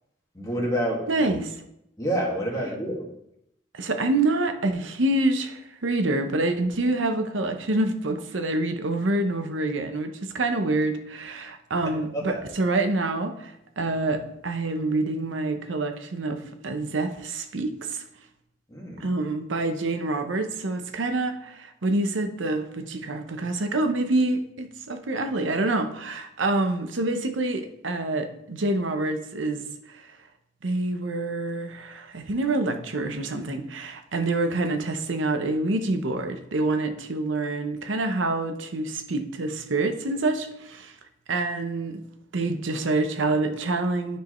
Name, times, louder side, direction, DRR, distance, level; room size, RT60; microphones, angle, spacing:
voice 1, 0.3-1.0 2.0-3.1 12.1-12.4 18.7-19.1, equal, 20° left, -2 dB, 1.9 m, -28 dB
voice 2, 1.1-1.6 3.7-18.0 19.0-30.0 30.6-40.9 41.3-42.0 42.3-44.2, right 2 dB, 75° right, 7 dB, 0.8 m, -27 dB
12.5 x 4.6 x 3.1 m, 0.80 s
head